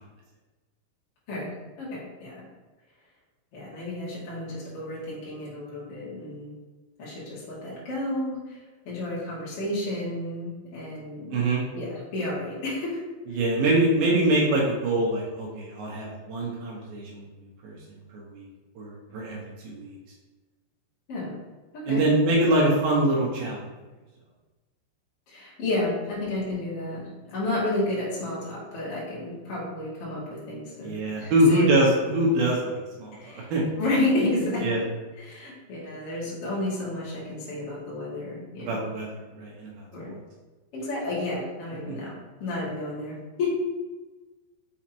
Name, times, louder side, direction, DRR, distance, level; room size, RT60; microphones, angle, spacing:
voice 1, 1.8-2.4 3.5-6.5 7.0-8.6 8.8-11.4 11.7-13.0 21.1-21.4 21.7-22.1 25.3-31.7 33.1-33.5 33.8-34.8 35.2-38.7 39.9-40.1 40.7-42.1 42.4-43.5, left 1 dB, 45° left, -7 dB, 2.0 m, -31 dB
voice 2, 11.3-11.6 13.3-17.2 17.6-17.7 18.1-18.5 18.8-19.4 19.6-20.0 21.9-23.6 30.8-33.6 34.6-34.8 38.6-39.7 40.0-40.1 41.9-42.0, right 1 dB, 75° right, -3 dB, 2.4 m, -24 dB
6.2 x 5.7 x 2.9 m, 1.2 s
omnidirectional pair, 5.3 m